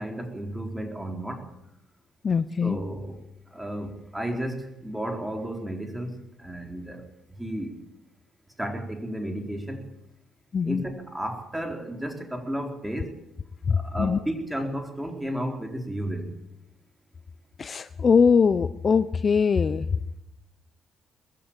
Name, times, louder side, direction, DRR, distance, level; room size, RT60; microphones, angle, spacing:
voice 1, 0.0-1.4 2.6-3.1 3.5-7.0 7.4-7.8 8.6-9.9 10.6-13.1 13.8-16.3, right 1 dB, 5° right, 4 dB, 4.2 m, -33 dB
voice 2, 2.2-2.8 10.5-10.8 13.7-14.2 17.6-19.9, left 5 dB, 40° left, 14 dB, 0.7 m, -22 dB
21.0 x 15.0 x 9.0 m, 0.86 s
cardioid pair, 90°, 0 cm